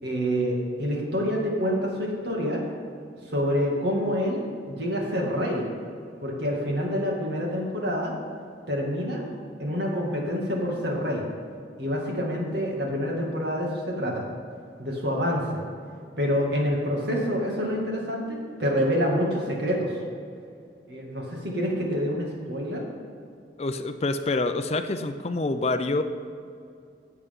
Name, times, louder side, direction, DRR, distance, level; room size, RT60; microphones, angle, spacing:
voice 1, 0.0-2.6 3.2-5.6 6.2-8.1 8.7-9.2 9.6-11.2 11.8-14.2 14.8-15.6 16.2-20.0 20.9-22.8, equal, 65° right, -1 dB, 2.2 m, -27 dB
voice 2, 23.6-26.0, left 2 dB, 35° left, 9 dB, 0.5 m, -26 dB
15.5 x 8.1 x 3.7 m, 2.4 s
head